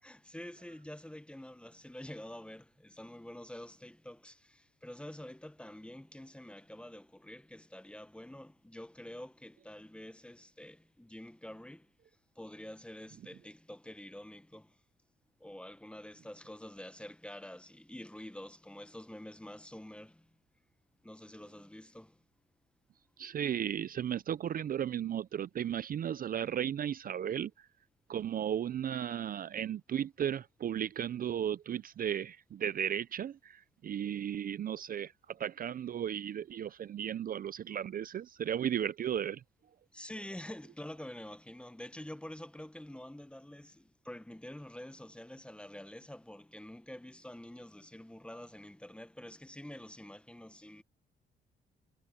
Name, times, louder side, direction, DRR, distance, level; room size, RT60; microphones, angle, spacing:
voice 1, 0.0-11.9 12.4-14.8 15.4-20.4 21.0-22.2 39.9-50.8, left 1 dB, 5° left, 0.9 m, -47 dB
voice 2, 23.2-27.5 28.1-39.4, right 9 dB, 45° right, 0.5 m, -35 dB
cardioid pair, 90°, 20 cm